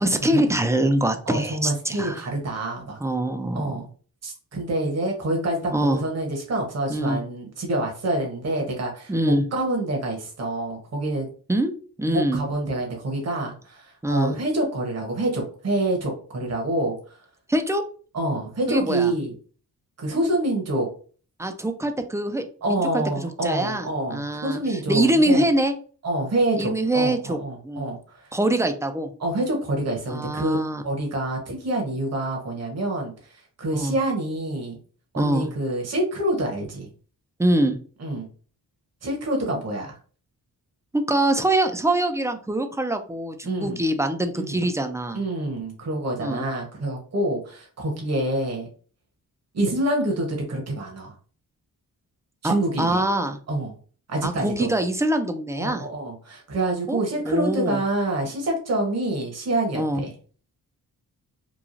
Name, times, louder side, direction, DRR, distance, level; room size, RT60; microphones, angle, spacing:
voice 1, 0.0-2.2 3.0-3.8 5.7-6.0 6.9-7.2 9.1-9.4 11.5-11.7 12.0-12.4 14.0-14.4 17.5-17.8 18.7-19.1 21.4-22.8 23.2-25.7 26.6-27.4 27.6-27.9 28.3-29.1 30.1-30.8 33.7-33.9 35.2-35.5 37.4-37.8 40.9-45.2 46.2-46.5 52.4-53.4 54.2-55.9 56.9-57.8 59.7-60.0, right 1 dB, 10° right, 6 dB, 0.3 m, -24 dB
voice 2, 1.3-3.0 3.5-3.9 4.2-11.3 12.1-17.2 18.1-19.3 20.0-20.9 22.6-25.5 26.0-28.3 29.2-30.6 30.8-34.8 35.1-36.9 38.0-38.3 39.0-40.0 43.4-43.8 44.4-44.6 45.1-48.7 49.5-51.1 52.4-53.0 53.5-53.7 54.1-54.7 55.6-60.1, right 1 dB, 45° right, 1 dB, 0.9 m, -27 dB
3.0 x 2.3 x 2.5 m, 0.42 s
cardioid pair, 80°, 36 cm